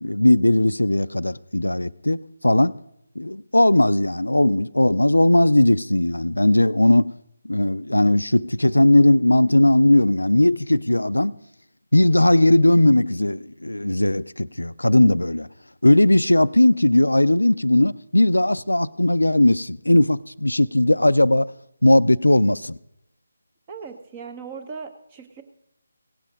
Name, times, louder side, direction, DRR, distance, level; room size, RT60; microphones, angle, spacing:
voice 1, 0.0-2.8 3.2-7.1 7.4-11.3 11.9-15.5 15.8-21.5 21.8-22.8, left 1 dB, 85° left, 0.4 m, -18 dB
voice 2, 23.7-25.4, right 5 dB, 25° right, 1.1 m, -38 dB
17.0 x 7.6 x 5.1 m
figure-of-eight pair, 155°, 0 cm